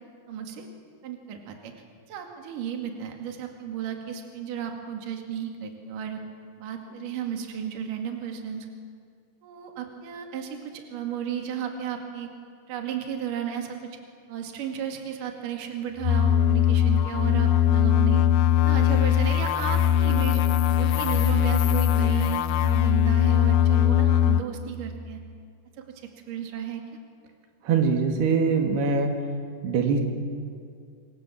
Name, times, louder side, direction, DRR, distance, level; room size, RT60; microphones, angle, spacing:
voice 1, 0.3-0.7 1.0-1.7 2.1-6.2 6.6-8.7 9.4-12.3 12.7-13.8 14.3-18.2 18.6-20.4 20.8-25.2 26.3-26.8, right 8 dB, 60° right, 3 dB, 3.7 m, -33 dB
sound 1, 16.0-24.4, left 10 dB, 75° left, 2.2 m, -21 dB
voice 2, 27.7-29.1 29.6-30.0, right 5 dB, 80° right, 3 dB, 4.1 m, -22 dB
27.0 x 24.5 x 7.6 m, 2.3 s
omnidirectional pair, 4.7 m